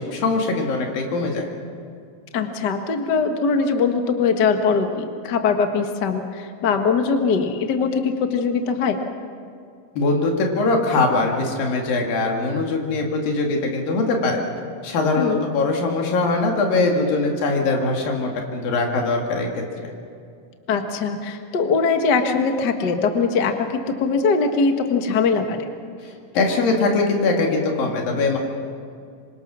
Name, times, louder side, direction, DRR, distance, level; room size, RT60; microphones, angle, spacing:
voice 1, 0.0-1.5 10.0-14.4 14.8-19.9 26.0-28.4, left 3 dB, 80° left, 1 dB, 3.9 m, -22 dB
voice 2, 2.3-9.0 15.2-15.4 20.7-25.7, left 5 dB, 45° left, 5 dB, 1.4 m, -21 dB
26.5 x 24.5 x 6.2 m, 2.3 s
omnidirectional pair, 4.0 m